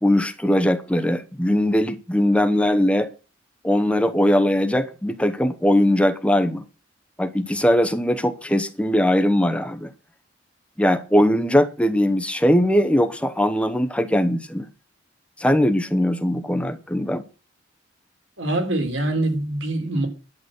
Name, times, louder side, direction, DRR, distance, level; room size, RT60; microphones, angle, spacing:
voice 1, 0.0-3.1 3.6-6.6 7.2-9.9 10.8-14.7 15.4-17.2, left 1 dB, 5° left, 0.9 m, -20 dB
voice 2, 18.4-20.1, right 1 dB, 80° right, 3.7 m, -24 dB
11.0 x 8.3 x 6.1 m
head